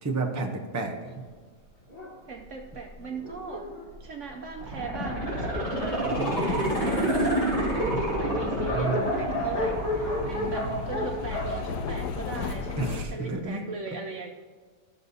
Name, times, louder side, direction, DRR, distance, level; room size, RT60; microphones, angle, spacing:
voice 1, 0.0-1.1 8.2-9.1 10.3-10.8 12.8-13.6, right 3 dB, 20° right, 1 dB, 0.4 m, -32 dB
Dog, 1.9-4.9 5.6-5.7 6.0-6.1 6.3-12.7, left 2 dB, 35° left, 1.4 m, -33 dB
voice 2, 2.3-3.7 4.0-14.3, right 4 dB, 65° right, 2 dB, 0.7 m, -39 dB
sound 1, 4.6-11.6 11.9-12.0, right 1 dB, 20° left, 1.9 m, -29 dB
sound 2, 6.4-13.1, left 4 dB, 80° left, 1.2 m, -37 dB
14.0 x 6.5 x 2.7 m, 1.5 s
omnidirectional pair, 1.8 m